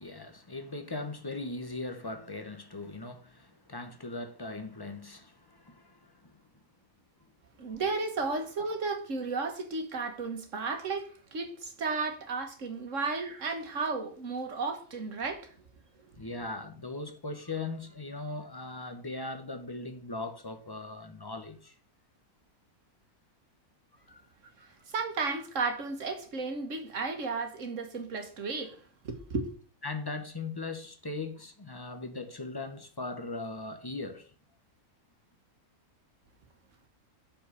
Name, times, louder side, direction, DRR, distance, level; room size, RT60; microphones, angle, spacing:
voice 1, 0.0-6.3 8.3-8.4 16.2-21.7 24.1-24.2 29.8-34.3, left 3 dB, 20° left, 0.8 m, -39 dB
voice 2, 7.6-15.5 24.9-28.8 29.0-29.5, right 4 dB, 55° right, 1.8 m, -33 dB
6.3 x 5.9 x 6.8 m
omnidirectional pair, 1.6 m